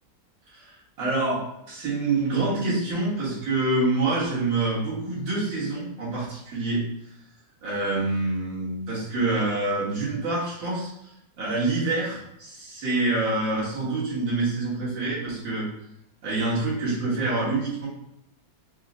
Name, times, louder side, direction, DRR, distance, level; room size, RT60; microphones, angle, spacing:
voice 1, 0.5-6.8 7.6-10.9 11.4-15.7 16.2-17.9, right 2 dB, 85° right, -7 dB, 2.2 m, -26 dB
4.8 x 2.0 x 3.8 m, 0.82 s
omnidirectional pair, 2.0 m